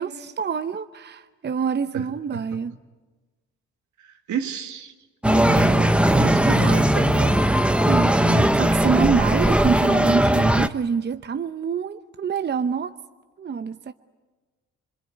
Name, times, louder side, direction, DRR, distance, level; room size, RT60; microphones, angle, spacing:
voice 1, 0.0-2.7 7.9-12.9 13.4-13.9, right 6 dB, 35° right, 0.8 m, -26 dB
voice 2, 4.0-4.9 5.2-7.5 8.2-8.5, right 7 dB, 75° right, 2.1 m, -31 dB
sound 1, 5.2-10.7, right 1 dB, 5° right, 1.0 m, -18 dB
26.0 x 23.5 x 9.6 m
cardioid pair, 90°, 30 cm